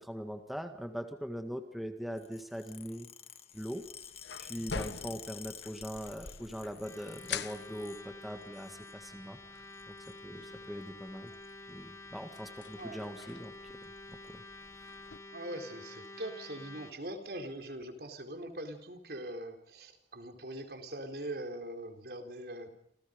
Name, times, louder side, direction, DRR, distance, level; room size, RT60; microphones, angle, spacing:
voice 1, 0.0-3.1 3.5-3.8 4.4-9.9 10.2-11.3 11.7-13.8 14.1-14.4 14.8-14.9, equal, ahead, 5 dB, 1.8 m, -41 dB
sound 1, 2.1-8.1 8.4-9.0 9.7-10.2 11.3-11.5 12.5-12.7 13.0-13.2 13.4-13.5 13.8-14.3 14.9-15.0 15.9-16.1, left 9 dB, 35° left, 1.7 m, -50 dB
sound 2, 3.5-15.2, left 5 dB, 85° left, 1.4 m, -47 dB
sound 3, 6.8-16.9, left 2 dB, 15° left, 2.1 m, -49 dB
voice 2, 12.8-13.1 15.3-22.7, right 1 dB, 60° right, 6 dB, 4.1 m, -42 dB
29.0 x 28.5 x 5.3 m, 0.72 s
head